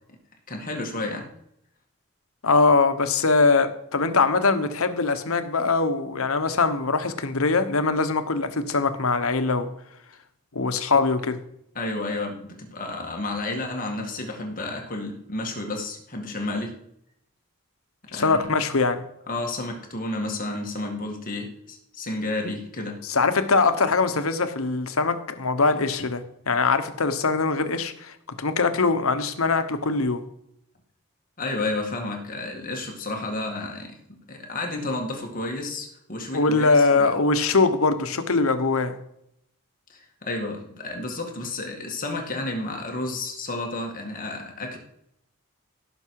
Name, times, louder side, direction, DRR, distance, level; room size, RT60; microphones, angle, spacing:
voice 1, 0.5-1.3 11.8-16.8 18.1-18.5 19.3-23.0 31.4-37.1 39.9-44.8, left 2 dB, 40° left, 1.9 m, -31 dB
voice 2, 2.4-9.7 10.5-11.4 18.1-19.0 23.0-30.2 36.3-39.0, left 4 dB, 75° left, 1.1 m, -22 dB
17.0 x 6.0 x 4.7 m
head